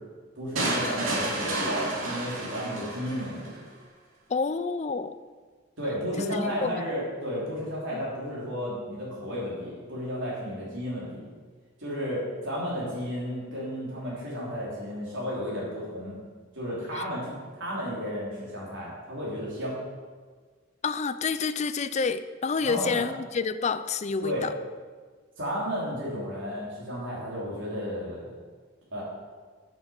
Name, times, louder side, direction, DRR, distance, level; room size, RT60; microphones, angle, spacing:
voice 1, 0.4-3.6 5.8-11.3 11.8-16.2 16.5-19.8 22.6-23.1 24.2-24.5 25.4-28.3 28.9-29.0, equal, 65° right, -6 dB, 3.4 m, -33 dB
sound 1, 0.6-3.6, right 2 dB, 85° right, 2.6 m, -30 dB
voice 2, 4.3-5.2 6.2-6.3 6.6-6.8 7.9-8.0 16.9-17.1 20.8-24.5, left 5 dB, 35° left, 12 dB, 0.4 m, -28 dB
8.9 x 6.2 x 7.1 m, 1.5 s
head